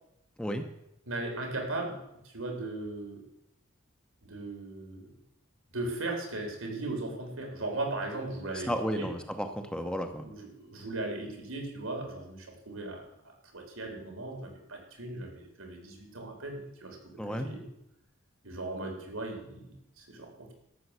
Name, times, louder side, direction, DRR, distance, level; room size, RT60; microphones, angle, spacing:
voice 1, 1.1-2.0 2.2-3.2 4.2-5.1 5.7-9.1 10.2-13.0 13.5-17.6 18.4-20.5, right 2 dB, 85° right, 2 dB, 3.6 m, -37 dB
voice 2, 8.4-10.3 17.2-17.5, equal, 5° left, 5 dB, 0.8 m, -33 dB
12.5 x 6.8 x 8.2 m, 0.83 s
head